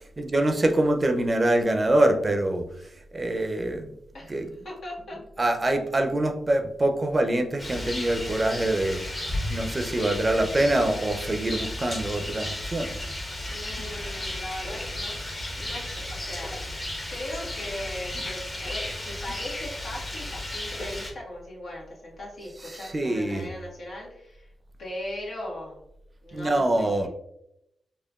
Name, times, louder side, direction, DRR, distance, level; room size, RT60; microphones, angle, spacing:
voice 1, 0.2-2.7 3.1-3.9 4.3-4.5 5.4-9.0 9.5-13.0 22.8-23.5 26.3-27.1, right 1 dB, 35° right, 5 dB, 0.5 m, -24 dB
voice 2, 4.1-5.2 13.5-15.2 15.6-24.5 24.8-25.8 26.2-27.1, left 1 dB, 70° left, -4 dB, 1.2 m, -39 dB
Rain, 7.6-21.1, left 1 dB, 35° left, 1.1 m, -34 dB
4.4 x 2.4 x 2.3 m, 0.80 s
supercardioid pair, 45°, 0 cm